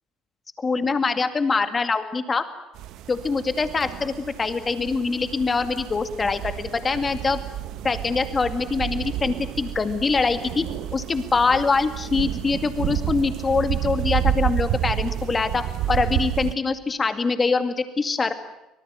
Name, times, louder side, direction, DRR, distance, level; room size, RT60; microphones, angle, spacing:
voice 1, 0.6-2.5 3.1-7.4 7.8-10.7 10.9-18.3, left 4 dB, 25° left, 10 dB, 2.2 m, -24 dB
sound 1, 2.7-16.5, right 12 dB, 65° right, 1.1 m, -30 dB
25.0 x 19.0 x 9.2 m, 0.97 s
cardioid pair, 125°, 0 cm